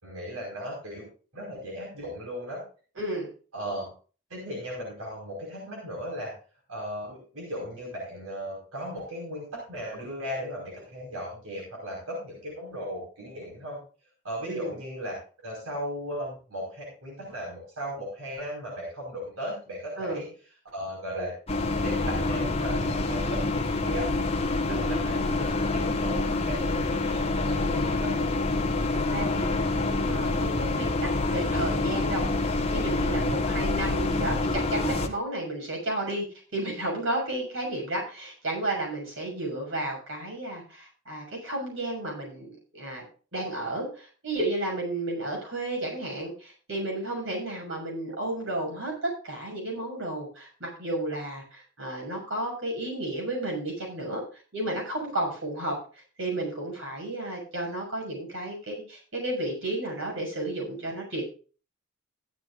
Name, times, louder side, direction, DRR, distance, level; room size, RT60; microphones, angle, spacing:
voice 1, 0.0-1.1 1.3-2.6 3.5-3.9 4.3-6.3 6.7-13.8 14.2-20.3 20.7-21.3 21.8-24.2 24.7-28.2, equal, 80° right, -3 dB, 5.0 m, -36 dB
voice 2, 3.0-3.3 14.4-14.7 20.0-20.2 24.6-25.0 28.9-36.3 36.5-43.0 43.3-61.3, right 1 dB, 60° right, 0 dB, 6.7 m, -32 dB
sound 1, 21.5-35.1, left 2 dB, 30° left, 1.3 m, -27 dB
15.0 x 12.0 x 2.5 m, 0.37 s
head